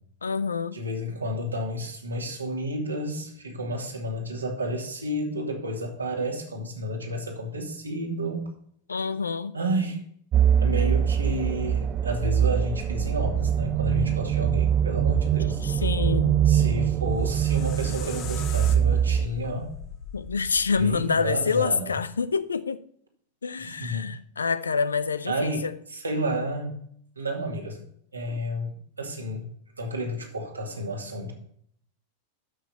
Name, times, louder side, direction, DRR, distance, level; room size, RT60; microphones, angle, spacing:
voice 1, 0.2-0.8 8.9-9.5 15.6-16.4 20.1-22.8 23.4-25.7, left 5 dB, 75° left, 0.6 m, -27 dB
voice 2, 0.7-8.5 9.5-10.0 10.6-15.6 16.5-19.7 20.8-21.9 23.6-24.1 25.3-26.8 27.2-27.9 28.1-29.5 29.8-31.3, equal, 80° right, 2.3 m, -31 dB
sound 1, 10.3-19.3, right 9 dB, 30° right, 0.3 m, -23 dB
sound 2, 17.0-22.1, left 7 dB, 40° left, 1.2 m, -41 dB
12.5 x 6.1 x 4.4 m
figure-of-eight pair, 90°, 0 cm